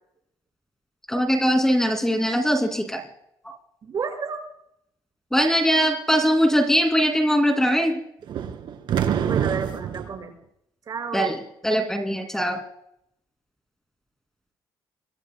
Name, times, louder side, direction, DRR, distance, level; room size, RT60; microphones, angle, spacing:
voice 1, 1.1-3.0 3.4-3.5 5.3-8.0 11.1-12.6, equal, 5° left, 5 dB, 2.7 m, -21 dB
voice 2, 3.8-4.4 9.3-10.3 10.9-11.3, right 6 dB, 50° right, 4 dB, 5.7 m, -31 dB
sound 1, 8.3-10.1, right 9 dB, 65° right, 2.3 m, -25 dB
25.5 x 23.5 x 2.3 m, 0.75 s
cardioid pair, 90°, 8 cm